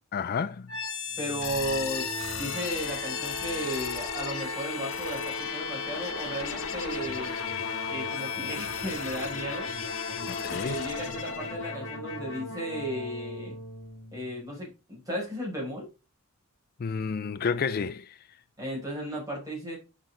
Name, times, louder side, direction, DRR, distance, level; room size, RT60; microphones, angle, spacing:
voice 1, 0.1-0.7 10.3-10.8 16.8-18.2, left 5 dB, 45° left, 0.4 m, -30 dB
sound 1, 0.7-14.6, left 5 dB, 65° left, 1.6 m, -34 dB
voice 2, 1.2-2.1 2.4-7.3 7.9-9.7 10.5-13.6 14.1-15.9 18.6-19.8, equal, 15° right, 5.8 m, -35 dB
9.1 x 6.0 x 3.8 m
head